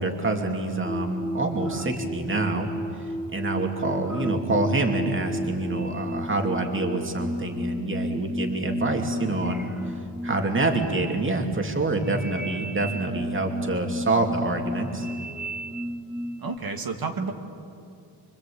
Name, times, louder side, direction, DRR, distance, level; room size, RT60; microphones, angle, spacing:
voice 1, 0.0-2.7 3.3-9.7 10.2-15.1, right 2 dB, 25° right, 3 dB, 2.6 m, -26 dB
sound 1, 0.8-16.6, equal, 5° right, 0.7 m, -33 dB
voice 2, 16.4-17.3, right 4 dB, 50° right, 4 dB, 1.9 m, -30 dB
25.5 x 24.5 x 8.6 m, 2.5 s
wide cardioid pair, 140°, 46 cm